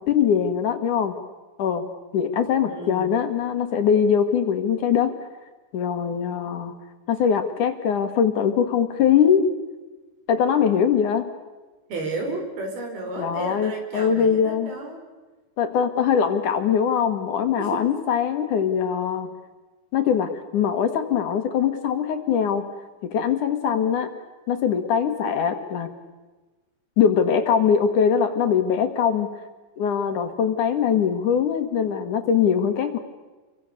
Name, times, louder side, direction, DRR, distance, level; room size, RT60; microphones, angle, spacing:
voice 1, 0.0-1.2 1.6-1.9 2.1-5.1 5.7-6.7 7.1-9.5 10.3-11.3 13.2-14.7 15.6-19.3 19.9-22.6 23.0-24.1 24.5-25.9 27.0-29.3 29.8-33.0, left 7 dB, 60° left, 7 dB, 2.9 m, -22 dB
voice 2, 2.7-3.1 11.9-15.0 17.6-18.0, right 2 dB, 80° right, 3 dB, 6.9 m, -32 dB
30.0 x 24.0 x 6.8 m, 1.2 s
omnidirectional pair, 4.4 m